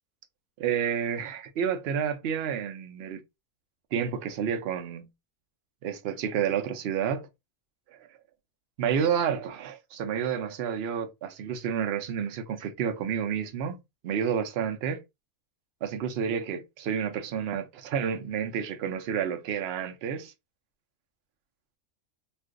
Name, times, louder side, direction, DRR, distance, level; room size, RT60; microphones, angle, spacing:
voice 1, 0.6-3.2 3.9-5.1 5.8-7.3 7.9-8.0 8.8-13.8 14.0-15.0 15.8-20.3, right 8 dB, 60° right, 0.6 m, -30 dB
2.5 x 2.4 x 3.6 m
omnidirectional pair, 1.6 m